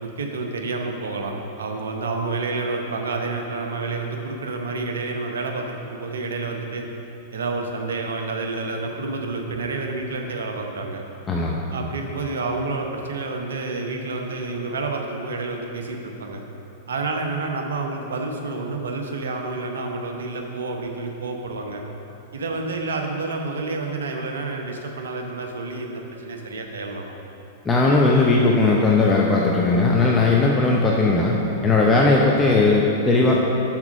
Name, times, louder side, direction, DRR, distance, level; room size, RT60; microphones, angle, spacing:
voice 1, 0.0-6.8 7.3-11.0 11.7-16.4 16.9-21.8 22.3-27.2, right 3 dB, 70° right, 2 dB, 0.8 m, -29 dB
voice 2, 11.3-11.6 27.7-31.4 31.6-33.4, left 3 dB, 20° left, -3 dB, 0.6 m, -18 dB
6.0 x 4.5 x 6.2 m, 2.9 s
figure-of-eight pair, 100°, 0 cm